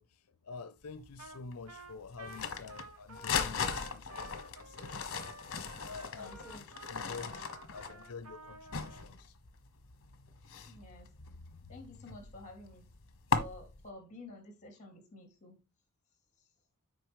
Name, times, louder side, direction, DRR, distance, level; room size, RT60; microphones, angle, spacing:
voice 1, 0.0-5.2 5.8-6.4 6.7-9.4, left 4 dB, 85° left, 0.6 m, -48 dB
sound 1, 0.9-13.9, left 5 dB, 65° left, 1.1 m, -39 dB
Trumpet, 1.2-1.4 1.7-9.1, right 2 dB, 75° right, 1.5 m, -52 dB
voice 2, 6.1-6.6 7.2-7.4 10.7-11.1 11.7-12.9 13.3-15.6, left 1 dB, 35° left, 2.9 m, -51 dB
8.8 x 5.3 x 3.1 m
head